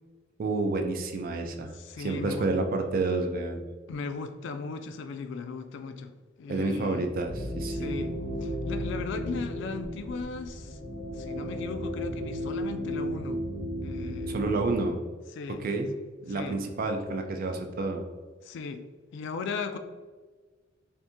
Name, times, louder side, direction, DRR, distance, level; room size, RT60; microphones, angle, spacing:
voice 1, 0.4-3.6 6.5-7.9 14.3-15.0 15.5-15.9 16.2-18.0, right 3 dB, 45° right, 4 dB, 0.4 m, -29 dB
voice 2, 1.7-2.5 3.9-6.1 6.4-7.1 7.7-8.1 8.4-10.8 11.1-13.4 13.8-14.4 15.3-15.6 16.3-16.6 18.4-18.8 19.1-19.8, left 4 dB, 65° left, 8 dB, 0.3 m, -37 dB
sound 1, 7.2-14.7, equal, 35° left, 1.2 m, -34 dB
2.7 x 2.6 x 3.5 m, 1.4 s
head